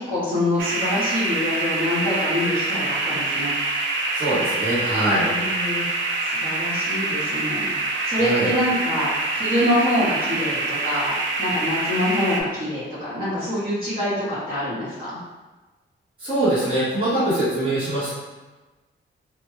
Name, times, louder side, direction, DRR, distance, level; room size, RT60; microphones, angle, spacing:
voice 1, 0.0-3.5 5.2-5.8 6.2-7.7 8.0-11.1 11.4-15.2, left 1 dB, 50° right, -12 dB, 1.4 m, -25 dB
sound 1, 0.6-12.4, right 2 dB, 80° right, 0.4 m, -25 dB
voice 2, 4.1-5.3 8.2-8.5 16.2-18.1, right 1 dB, 25° right, -13 dB, 1.3 m, -23 dB
2.6 x 2.2 x 3.1 m, 1.2 s
wide cardioid pair, 145°, 19 cm